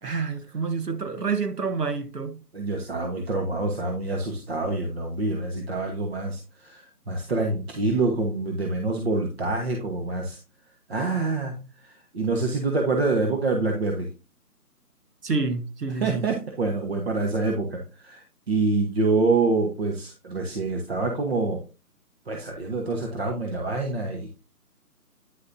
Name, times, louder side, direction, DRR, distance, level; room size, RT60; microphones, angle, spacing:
voice 1, 0.0-2.4 15.2-16.3, right 4 dB, 85° right, 1.4 m, -28 dB
voice 2, 2.5-10.4 10.9-14.1 16.0-21.6 22.3-24.3, right 3 dB, 40° right, 1.4 m, -26 dB
9.9 x 6.4 x 2.7 m
figure-of-eight pair, 155°, 46 cm